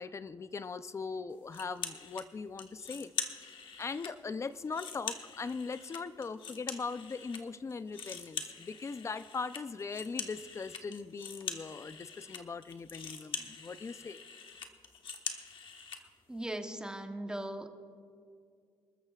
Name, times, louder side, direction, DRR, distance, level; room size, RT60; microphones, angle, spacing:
voice 1, 0.0-3.1 3.4-3.5 3.8-14.2, left 4 dB, 30° left, 13 dB, 0.5 m, -40 dB
sound 1, 1.5-2.3 2.6-4.1 4.5-7.4 7.7-16.0, left 6 dB, 60° left, 1.2 m, -43 dB
voice 2, 16.3-17.7, right 1 dB, 10° right, 5 dB, 0.9 m, -38 dB
27.0 x 13.5 x 2.4 m, 2.3 s
cardioid pair, 120°, 10 cm